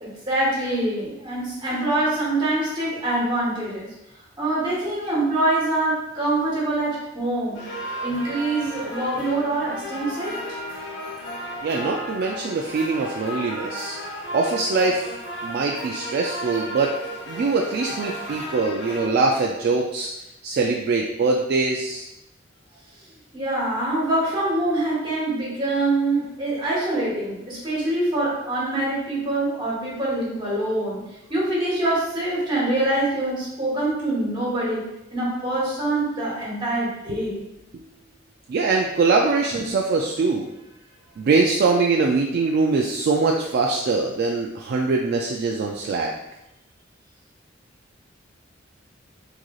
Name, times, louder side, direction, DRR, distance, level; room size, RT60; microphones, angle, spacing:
voice 1, 0.0-3.9 4.4-7.6 8.0-10.6 23.3-31.0 31.3-34.8 35.1-37.4 39.6-39.7, right 2 dB, 25° right, -6 dB, 1.3 m, -24 dB
sound 1, 7.5-19.1, equal, 70° left, 0.7 m, -34 dB
voice 2, 11.6-14.0 14.3-15.1 15.4-16.9 17.3-20.1 20.4-22.1 38.5-40.5 41.2-46.1, right 3 dB, 55° right, 0 dB, 0.3 m, -22 dB
3.7 x 3.1 x 2.3 m, 0.88 s
head